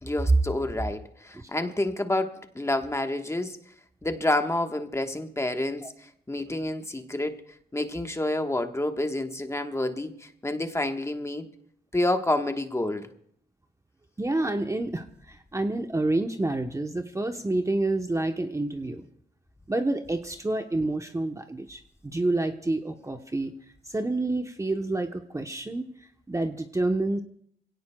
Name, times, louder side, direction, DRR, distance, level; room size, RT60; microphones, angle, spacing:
voice 1, 0.0-3.6 4.0-7.4 7.7-11.5 11.9-13.1, left 1 dB, 15° left, 1.3 m, -29 dB
voice 2, 14.2-19.0 19.7-23.5 23.9-25.9 26.3-27.2, right 2 dB, 15° right, 0.9 m, -28 dB
26.5 x 17.0 x 2.3 m
cardioid pair, 80°, 18 cm